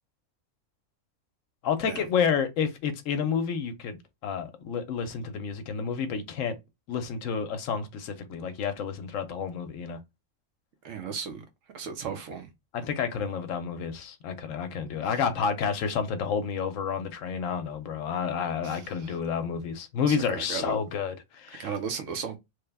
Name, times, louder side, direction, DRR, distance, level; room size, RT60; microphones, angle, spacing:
voice 1, 1.6-4.0 4.2-6.5 6.9-10.0 12.7-21.7, left 6 dB, 75° left, 0.9 m, -30 dB
voice 2, 10.8-11.4 11.7-12.5 18.6-19.2 20.1-20.8 21.6-22.4, right 6 dB, 70° right, 1.0 m, -35 dB
3.2 x 2.1 x 3.3 m
omnidirectional pair, 1.4 m